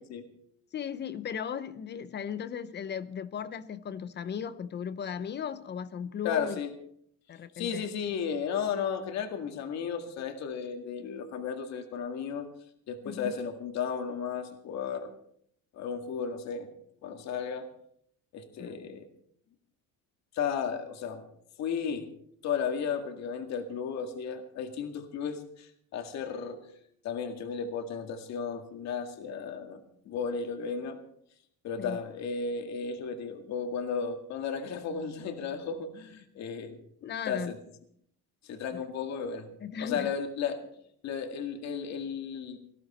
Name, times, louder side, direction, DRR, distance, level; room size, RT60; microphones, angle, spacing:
voice 1, 0.7-6.6 7.3-7.9 13.0-13.3 18.6-18.8 31.8-32.0 37.0-37.5 38.7-38.8 39.6-40.1, left 7 dB, 35° left, 14 dB, 0.8 m, -37 dB
voice 2, 6.2-6.7 7.5-12.5 12.9-15.1 15.7-16.7 17.0-17.7 18.3-19.1 20.3-21.2 21.6-22.0 22.4-26.6 27.0-29.8 30.1-31.0 31.6-36.8 37.3-37.6 38.5-39.5 39.8-40.6 41.0-42.6, left 6 dB, 55° left, 5 dB, 2.0 m, -34 dB
19.0 x 15.0 x 4.3 m, 0.68 s
cardioid pair, 145°, 32 cm